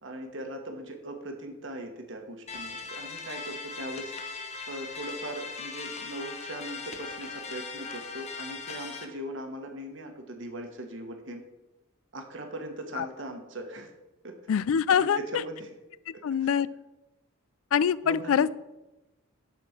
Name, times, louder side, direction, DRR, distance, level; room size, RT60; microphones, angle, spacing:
voice 1, 0.0-4.1 4.7-11.4 12.1-13.9 14.2-14.3 15.0-15.7 16.3-16.5 18.0-18.5, right 1 dB, 55° right, 4 dB, 1.3 m, -39 dB
sound 1, 2.5-9.0, left 4 dB, 30° left, 0.9 m, -39 dB
voice 2, 14.5-15.2 16.1-16.7 17.7-18.6, left 7 dB, 65° left, 18 dB, 0.3 m, -24 dB
12.0 x 4.3 x 6.5 m, 1.0 s
head